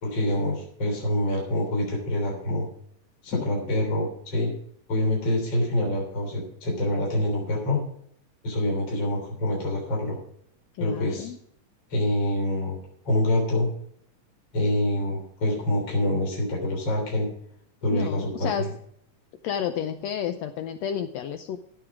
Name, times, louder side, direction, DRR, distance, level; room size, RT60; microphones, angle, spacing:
voice 1, 0.0-2.7 3.2-4.5 4.9-7.8 8.4-10.2 10.8-11.3 11.9-12.8 13.0-13.7 14.5-17.3 17.8-18.5, left 1 dB, 35° left, -1 dB, 3.9 m, -26 dB
voice 2, 10.7-11.4 17.9-18.8 19.4-21.6, left 9 dB, 90° left, 9 dB, 1.5 m, -31 dB
15.5 x 7.1 x 4.9 m, 0.67 s
omnidirectional pair, 3.8 m